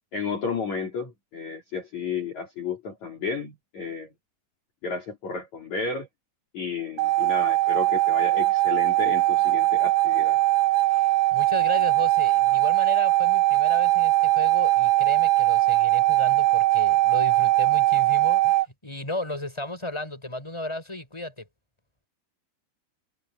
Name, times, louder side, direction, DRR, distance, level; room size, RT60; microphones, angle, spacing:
voice 1, 0.1-4.1 4.8-6.1 6.5-10.4, left 5 dB, 40° left, 4.5 m, -32 dB
sound 1, 7.0-18.7, right 17 dB, 75° right, 3.0 m, -21 dB
voice 2, 10.9-21.5, left 1 dB, 5° left, 7.4 m, -34 dB
omnidirectional pair, 5.2 m